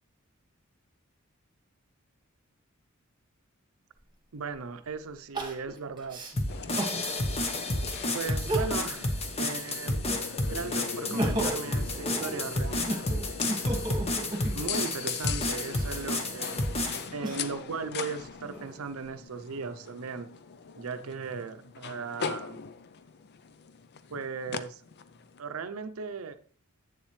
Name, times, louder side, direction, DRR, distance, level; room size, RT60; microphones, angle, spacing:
Crying sobbing, 4.0-4.1 5.3-7.0 7.6-7.7 8.3-9.0 9.4-10.4 10.9-14.9 15.6-17.7 18.2-19.1, right 1 dB, 20° right, 1.5 m, -35 dB
voice 1, 4.3-6.2 6.5-6.7 8.1-10.0 10.5-13.1 14.5-16.6 17.1-20.3 20.8-22.6 24.1-24.8 25.4-26.3, right 5 dB, 85° right, 10 dB, 0.6 m, -37 dB
sound 1, 6.4-17.1, left 1 dB, 30° left, 1.0 m, -31 dB
sound 2, 6.5-25.4, left 6 dB, 50° left, 0.5 m, -41 dB
8.0 x 7.3 x 3.2 m, 0.43 s
head